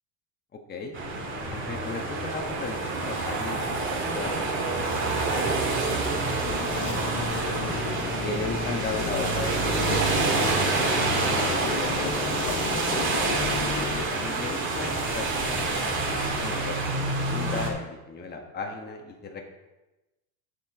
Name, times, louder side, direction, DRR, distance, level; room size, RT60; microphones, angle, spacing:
voice 1, 0.5-1.0 1.5-6.4 6.7-6.8 7.1-7.3 8.0-10.0 10.9-13.1 14.1-19.4, left 3 dB, 20° left, 2 dB, 1.5 m, -37 dB
sound 1, 0.9-17.7, right 3 dB, 30° right, 2.0 m, -27 dB
sound 2, 6.4-14.0, left 8 dB, 50° left, 0.9 m, -34 dB
10.0 x 7.5 x 3.8 m, 1.0 s
supercardioid pair, 125°, 43 cm